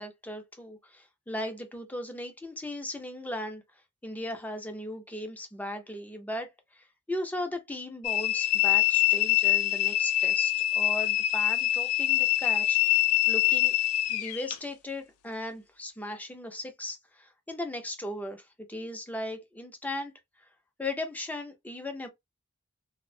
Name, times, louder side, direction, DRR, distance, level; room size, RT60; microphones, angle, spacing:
voice 1, 0.0-3.6 4.0-13.0 13.3-13.7 14.1-20.1 20.4-20.5 20.8-22.1, left 1 dB, 5° left, 0.5 m, -37 dB
sound 1, 8.0-14.6, left 15 dB, 75° left, 0.3 m, -25 dB
2.5 x 2.0 x 2.6 m
head